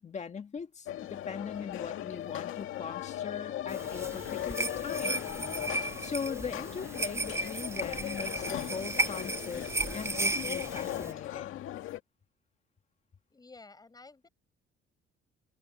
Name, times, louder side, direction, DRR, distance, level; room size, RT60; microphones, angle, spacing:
voice 1, 0.0-5.2 6.0-11.6, left 6 dB, 35° left, 1.9 m, -40 dB
sound 1, 0.9-12.0, left 12 dB, 75° left, 2.0 m, -38 dB
sound 2, 3.7-11.1, right 2 dB, 10° right, 0.6 m, -35 dB
voice 2, 13.3-14.3, left 3 dB, 20° left, 5.9 m, -52 dB
cardioid pair, 130°, 21 cm